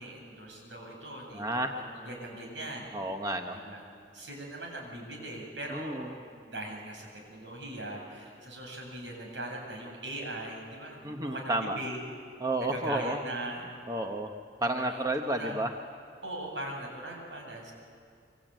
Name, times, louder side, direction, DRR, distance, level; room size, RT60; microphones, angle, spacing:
voice 1, 0.0-1.5 1.9-2.9 3.5-3.8 4.1-12.0 12.6-13.6 14.6-15.6 16.2-17.7, right 1 dB, 80° right, 1 dB, 7.8 m, -40 dB
voice 2, 1.3-1.7 2.9-3.6 5.7-6.2 11.0-11.8 12.4-13.2 13.6-14.3 14.6-15.7, right 1 dB, 20° right, 4 dB, 1.1 m, -31 dB
26.0 x 25.0 x 9.1 m, 2.3 s
head